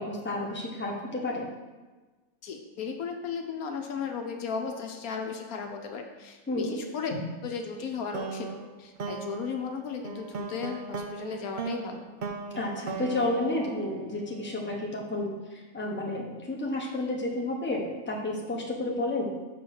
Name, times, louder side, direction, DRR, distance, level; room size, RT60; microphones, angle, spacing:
voice 1, 0.0-1.5 6.5-6.8 12.5-19.3, left 2 dB, 10° left, -2 dB, 1.0 m, -31 dB
voice 2, 2.4-8.5 8.8-12.0, left 5 dB, 75° left, 4 dB, 1.2 m, -35 dB
sound 1, 8.1-14.5, right 4 dB, 60° right, 0.5 m, -38 dB
6.4 x 4.3 x 6.3 m, 1.2 s
omnidirectional pair, 1.6 m